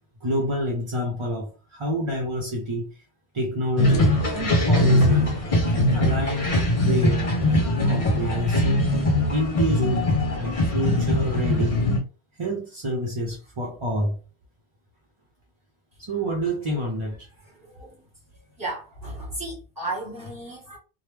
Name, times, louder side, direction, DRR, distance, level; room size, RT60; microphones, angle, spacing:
voice 1, 0.2-3.0 3.3-7.3 7.6-8.9 9.3-10.1 10.4-11.8 12.4-14.2 16.0-17.5, equal, 35° right, 0.6 m, -28 dB
sound 1, 3.8-12.0, left 1 dB, 35° left, 0.8 m, -21 dB
voice 2, 17.6-18.0 18.6-20.8, right 2 dB, 15° right, 1.7 m, -34 dB
3.0 x 2.2 x 3.4 m
omnidirectional pair, 1.2 m